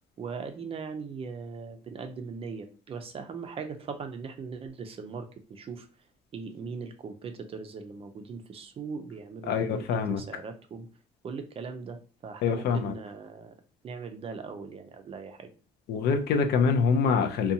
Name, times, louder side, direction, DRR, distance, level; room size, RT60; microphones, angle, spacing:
voice 1, 0.2-5.9 6.3-10.9 11.2-13.5 13.8-15.5, right 5 dB, 35° right, 7 dB, 0.4 m, -39 dB
voice 2, 9.5-10.2 12.4-12.9 15.9-17.5, left 5 dB, 70° left, 6 dB, 0.4 m, -25 dB
2.6 x 2.2 x 2.6 m, 0.36 s
cardioid pair, 110°, 17 cm